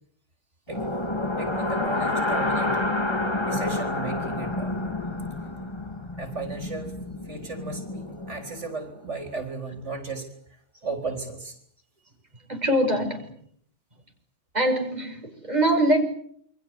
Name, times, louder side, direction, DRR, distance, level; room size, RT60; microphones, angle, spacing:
sound 1, 0.7-8.7, left 2 dB, 25° left, 2.2 m, -29 dB
voice 1, 1.4-2.8 3.4-4.7 6.2-6.9 7.2-10.3 10.8-11.6, right 3 dB, 85° right, 5 dB, 4.4 m, -35 dB
voice 2, 12.5-13.3 14.5-16.0, right 1 dB, 35° right, 3 dB, 5.9 m, -23 dB
29.0 x 24.0 x 8.1 m, 0.67 s
omnidirectional pair, 1.2 m